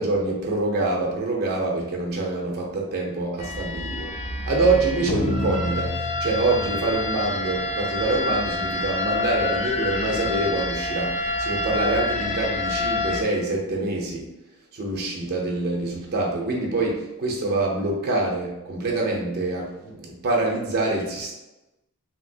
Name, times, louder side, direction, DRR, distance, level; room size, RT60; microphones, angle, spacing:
voice 1, 0.0-4.1 4.5-14.3 14.7-21.3, right 2 dB, 45° right, -2 dB, 0.6 m, -25 dB
sound 1, 3.4-13.2, left 2 dB, 30° left, 0.4 m, -27 dB
2.9 x 2.8 x 2.7 m, 0.99 s
head